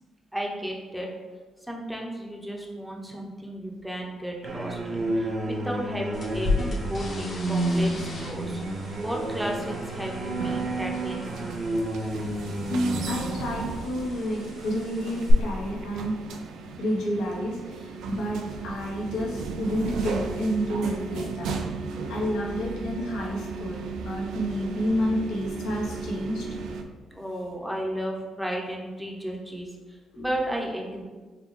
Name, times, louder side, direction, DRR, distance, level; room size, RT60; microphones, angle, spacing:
voice 1, 0.3-1.1 1.6-8.6 9.0-11.4 27.1-31.0, right 1 dB, 5° right, -1 dB, 0.7 m, -33 dB
sound 1, 4.4-13.2, right 1 dB, 45° right, 0.8 m, -30 dB
sound 2, 6.1-15.3, left 3 dB, 50° left, 0.9 m, -36 dB
sound 3, 7.6-26.8, right 4 dB, 80° right, 0.4 m, -36 dB
voice 2, 12.7-16.2 16.8-21.6 22.0-26.5 30.1-30.2, equal, 85° left, -4 dB, 0.9 m, -30 dB
5.1 x 2.2 x 3.2 m, 1.4 s
cardioid pair, 90°, 0 cm